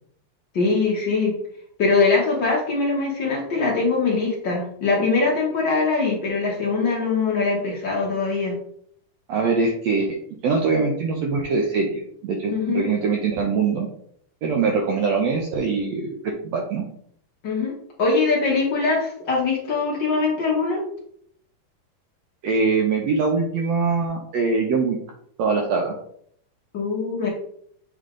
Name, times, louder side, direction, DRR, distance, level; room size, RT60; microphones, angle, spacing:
voice 1, 0.5-1.3 1.8-8.5 12.5-12.9 17.4-20.8 26.7-27.3, left 4 dB, 60° left, -3 dB, 1.2 m, -22 dB
voice 2, 9.3-10.2 10.4-13.9 14.4-16.8 22.4-25.0 25.4-26.0, right 4 dB, 75° right, 1 dB, 1.5 m, -23 dB
7.8 x 3.4 x 3.7 m, 0.66 s
omnidirectional pair, 3.9 m